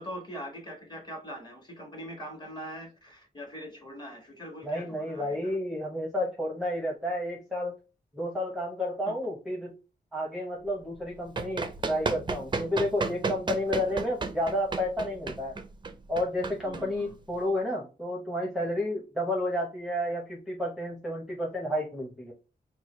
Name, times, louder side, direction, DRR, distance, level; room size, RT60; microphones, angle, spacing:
voice 1, 0.0-5.6 9.0-9.1 13.9-14.0 16.6-17.1, equal, 25° left, 2 dB, 1.4 m, -42 dB
voice 2, 4.6-7.7 8.1-9.8 10.1-15.5 16.1-22.3, left 1 dB, ahead, -2 dB, 0.8 m, -31 dB
Run, 11.0-17.4, right 4 dB, 25° right, 0.4 m, -34 dB
4.7 x 2.2 x 3.0 m, 0.32 s
wide cardioid pair, 105°, 17 cm